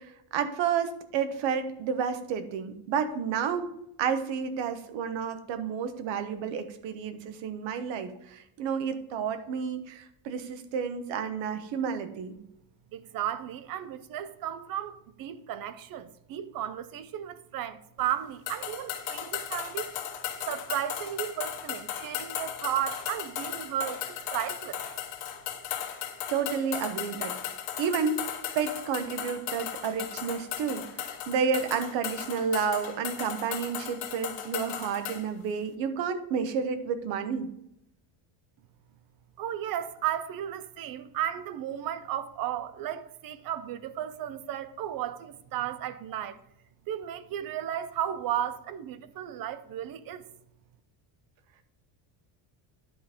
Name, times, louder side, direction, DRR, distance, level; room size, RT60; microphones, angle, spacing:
voice 1, 0.0-3.7 4.0-12.4 25.8-26.0 26.3-27.3 27.8-37.5, right 6 dB, 70° right, 1.1 m, -31 dB
voice 2, 12.9-19.9 20.4-24.8 39.4-46.4 46.9-50.3, right 11 dB, 45° right, 0.6 m, -34 dB
sound 1, 18.5-35.2, left 10 dB, 85° left, 1.4 m, -36 dB
11.0 x 3.9 x 5.1 m
cardioid pair, 165°, 48 cm